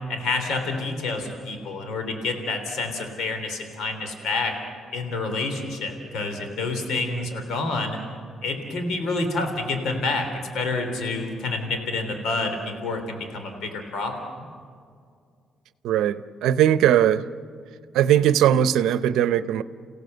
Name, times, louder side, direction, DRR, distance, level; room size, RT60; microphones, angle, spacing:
voice 1, 0.0-4.5 4.9-8.0 8.4-10.3 10.5-14.3, left 3 dB, 80° left, 3.5 m, -28 dB
voice 2, 15.8-17.3 17.9-19.6, right 10 dB, 85° right, 0.7 m, -19 dB
29.0 x 16.5 x 8.0 m
cardioid pair, 90°, 0 cm